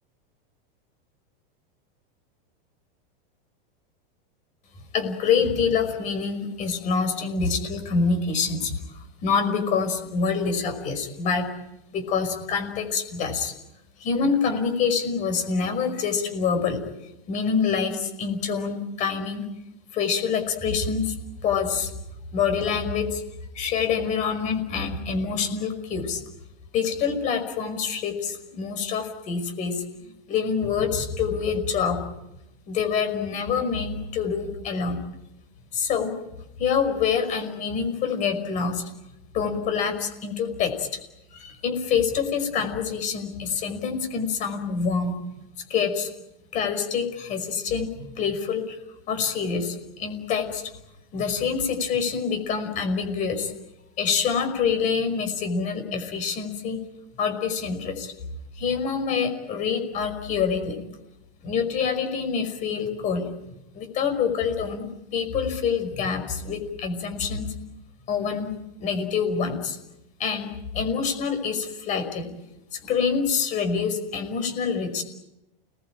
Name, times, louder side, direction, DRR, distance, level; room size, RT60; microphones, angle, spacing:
voice 1, 4.9-11.5 11.9-13.5 14.0-16.8 17.3-19.4 19.9-21.2 21.4-21.9 22.3-23.2 23.5-26.2 26.7-29.8 30.3-32.0 32.7-35.0 35.7-36.1 36.6-38.9 39.3-41.0 41.3-45.1 45.7-46.1 46.5-48.8 49.1-50.7 51.1-53.5 54.0-56.8 57.2-58.1 58.5-60.8 61.4-63.3 63.7-67.5 68.1-68.5 68.8-69.8 70.2-72.3 72.7-75.0, left 6 dB, 25° left, 7 dB, 5.4 m, -26 dB
29.5 x 20.5 x 9.0 m, 0.90 s
supercardioid pair, 175°, 29 cm